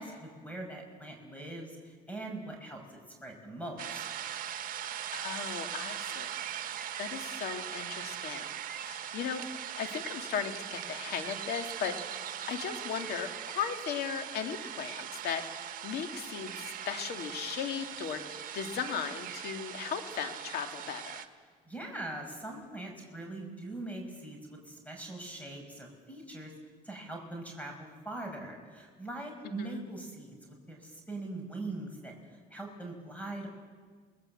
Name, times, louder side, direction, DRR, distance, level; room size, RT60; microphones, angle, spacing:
voice 1, 0.0-1.7 2.1-2.8 3.2-4.0 21.7-26.5 26.8-32.1 32.5-33.5, right 2 dB, 10° left, 2 dB, 5.4 m, -41 dB
sound 1, 3.8-21.2, right 10 dB, 55° right, 1.5 m, -40 dB
voice 2, 5.1-6.3 7.0-8.5 8.8-9.4 9.7-12.0 12.5-21.3 29.6-29.9, left 7 dB, 70° left, 6 dB, 2.5 m, -37 dB
28.0 x 20.5 x 7.9 m, 1.5 s
cardioid pair, 110°, 17 cm